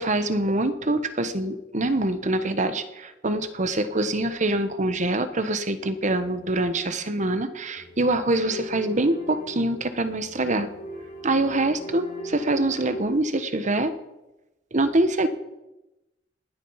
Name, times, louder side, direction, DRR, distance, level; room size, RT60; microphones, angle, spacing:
voice 1, 0.0-10.7 11.2-13.9 14.7-15.3, right 2 dB, 45° right, 11 dB, 1.2 m, -24 dB
sound 1, 7.8-13.1, equal, 45° left, 3.7 m, -40 dB
19.5 x 10.0 x 5.7 m, 0.97 s
head